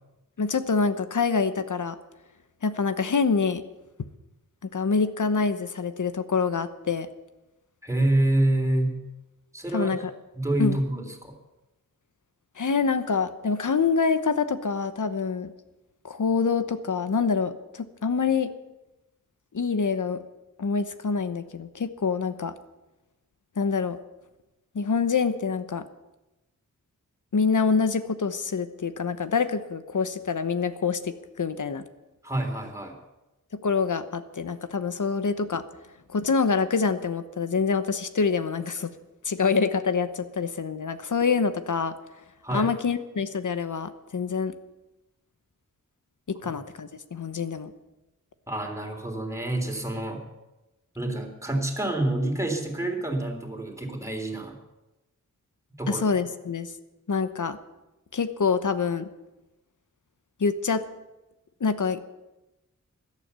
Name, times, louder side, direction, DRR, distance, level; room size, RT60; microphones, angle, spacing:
voice 1, 0.4-2.0 2.6-3.6 4.7-7.1 9.7-10.0 10.6-10.8 12.6-15.5 16.0-18.5 19.5-20.2 20.6-22.5 23.6-24.0 24.7-25.8 27.3-31.8 33.6-35.6 36.1-38.9 39.2-41.9 42.5-44.5 46.3-47.7 55.9-56.7 57.1-57.6 58.1-59.1 60.4-60.8 61.6-62.0, left 5 dB, 70° left, 11 dB, 1.1 m, -26 dB
voice 2, 7.8-9.0 9.5-10.0 10.3-11.3 32.2-32.9 42.4-42.7 48.5-50.2 50.9-54.6 55.8-56.1, right 1 dB, 10° right, 2 dB, 3.2 m, -27 dB
16.5 x 12.0 x 6.9 m, 1.0 s
wide cardioid pair, 90°, 32 cm